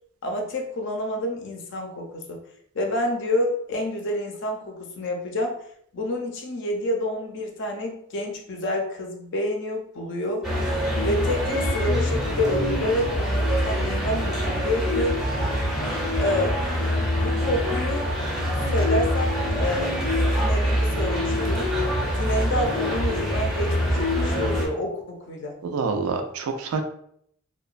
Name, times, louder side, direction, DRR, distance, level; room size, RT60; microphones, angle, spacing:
voice 1, 0.2-2.4 2.7-5.5 5.9-10.5 11.0-15.2 16.2-16.6 17.2-18.1 18.7-19.9 20.3-21.7 22.1-25.6, left 1 dB, 55° left, 2 dB, 0.5 m, -28 dB
sound 1, 10.4-24.7, equal, ahead, 0.5 m, -24 dB
voice 2, 25.6-26.8, right 4 dB, 75° right, 5 dB, 0.3 m, -27 dB
2.8 x 2.1 x 2.4 m, 0.68 s
head